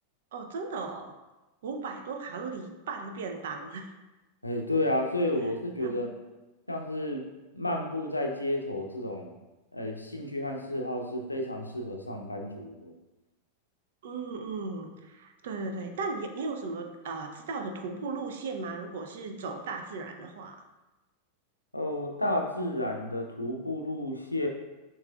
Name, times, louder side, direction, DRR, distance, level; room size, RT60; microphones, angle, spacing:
voice 1, 0.3-1.1 1.6-3.9 5.8-6.1 14.0-20.6, right 4 dB, 55° right, 4 dB, 0.6 m, -36 dB
voice 2, 4.4-6.1 6.7-7.3 7.5-9.3 9.7-12.9 21.7-24.5, left 1 dB, 85° left, 2 dB, 0.6 m, -31 dB
6.6 x 3.1 x 2.3 m, 1.1 s
figure-of-eight pair, 90°, 0 cm